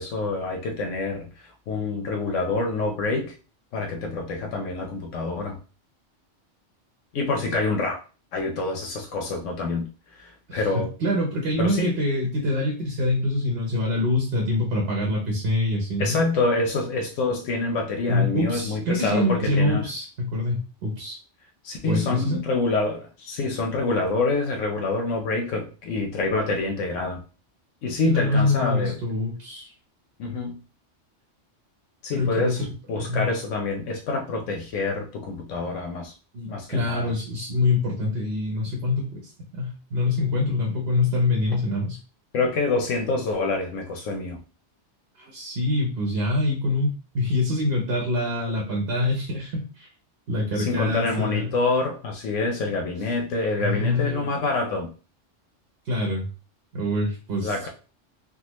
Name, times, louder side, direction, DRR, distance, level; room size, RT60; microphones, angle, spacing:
voice 1, 0.0-3.3 3.7-5.6 7.1-8.0 8.3-10.9 11.6-11.9 16.0-19.9 21.6-27.2 27.8-29.0 30.2-30.6 32.0-36.1 36.5-37.1 42.3-44.4 50.6-54.9 57.4-57.7, left 3 dB, 80° left, 2 dB, 1.0 m, -26 dB
voice 2, 10.5-16.2 18.1-21.2 21.8-22.4 28.0-29.7 32.1-33.3 36.3-42.0 45.2-49.9 50.3-51.5 53.6-54.3 55.9-56.3 56.7-57.7, left 2 dB, 60° right, 0 dB, 1.0 m, -25 dB
3.5 x 2.3 x 2.9 m, 0.36 s
omnidirectional pair, 1.3 m